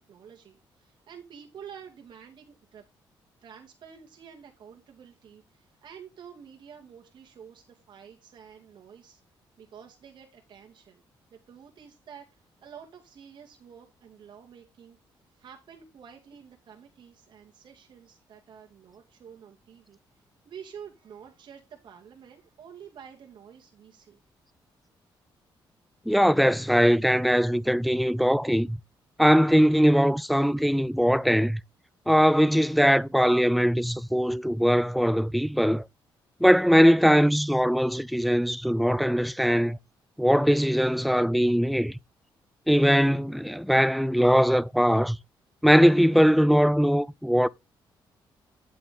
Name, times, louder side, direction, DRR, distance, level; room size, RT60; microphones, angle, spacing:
voice 1, 0.1-2.8 3.4-9.2 9.6-11.0 11.3-15.0 15.3-24.2, right 7 dB, 60° right, 2.3 m, -49 dB
voice 2, 26.1-28.8 29.2-31.6 32.1-35.8 36.4-39.8 40.2-42.0 42.7-45.2 45.6-47.5, equal, ahead, 0.4 m, -21 dB
9.5 x 7.8 x 3.6 m
cardioid pair, 115°, 9 cm